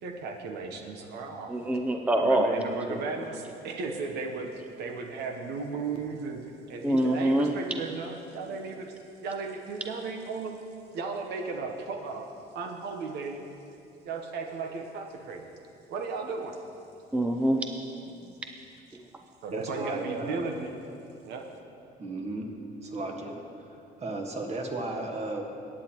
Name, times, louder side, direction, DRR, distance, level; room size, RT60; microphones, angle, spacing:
voice 1, 0.0-1.5 2.0-4.5 4.8-8.9 9.2-10.6 10.9-12.3 12.5-13.4 14.0-15.5 15.9-16.6 19.4-20.8 21.2-21.5, right 4 dB, 80° right, 3 dB, 1.0 m, -35 dB
voice 2, 1.5-2.5 6.8-7.5 17.1-17.6, right 1 dB, 10° right, 4 dB, 0.5 m, -24 dB
voice 3, 19.5-20.4 22.0-22.5 22.8-25.4, right 2 dB, 40° right, 2 dB, 1.6 m, -35 dB
18.5 x 8.8 x 3.0 m, 2.6 s
cardioid pair, 110°, 17 cm